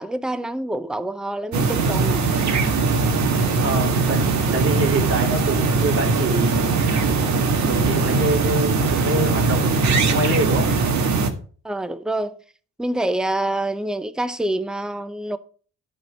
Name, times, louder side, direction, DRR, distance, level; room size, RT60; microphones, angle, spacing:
voice 1, 0.0-2.2 11.6-12.4 12.8-15.4, right 1 dB, ahead, 0.6 m, -26 dB
sound 1, 1.5-11.3, right 4 dB, 65° right, 1.8 m, -20 dB
voice 2, 3.6-4.2 4.5-6.7 7.6-10.7, right 1 dB, 45° right, 2.6 m, -25 dB
11.0 x 4.4 x 6.1 m
cardioid pair, 90°, 30 cm